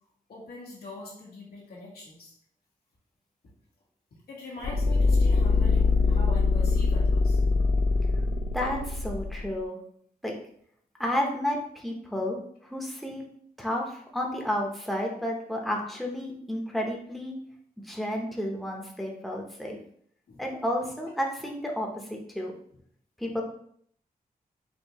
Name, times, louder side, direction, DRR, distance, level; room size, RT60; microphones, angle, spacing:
voice 1, 0.3-2.3 4.3-7.4 20.3-20.4 23.2-23.3, left 2 dB, 85° left, -4 dB, 1.3 m, -43 dB
sound 1, 4.6-9.5, left 3 dB, 50° left, 0.4 m, -23 dB
voice 2, 8.5-9.8 10.2-10.3 11.0-12.4 12.6-13.2 13.6-17.3 17.8-19.8 20.4-22.5 23.2-23.4, left 1 dB, ahead, -1 dB, 0.9 m, -31 dB
4.5 x 2.6 x 3.0 m, 0.64 s
cardioid pair, 65°, 16 cm